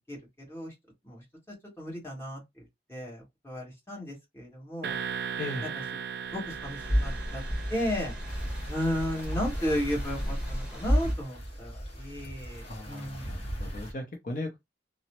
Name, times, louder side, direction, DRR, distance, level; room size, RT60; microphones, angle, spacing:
voice 1, 1.5-2.4 2.9-5.0 5.6-5.7 6.3-7.4 7.7-8.1 8.7-13.3, equal, 15° left, 1.5 m, -34 dB
sound 1, 4.8-9.7, right 7 dB, 60° right, 0.4 m, -38 dB
sound 2, 6.4-11.1, equal, 5° right, 1.2 m, -31 dB
Sea against shore in secret cove - crete, 8.3-13.9, equal, 35° left, 1.1 m, -40 dB
voice 2, 12.6-14.6, left 2 dB, 50° left, 0.6 m, -37 dB
3.0 x 2.1 x 2.9 m
head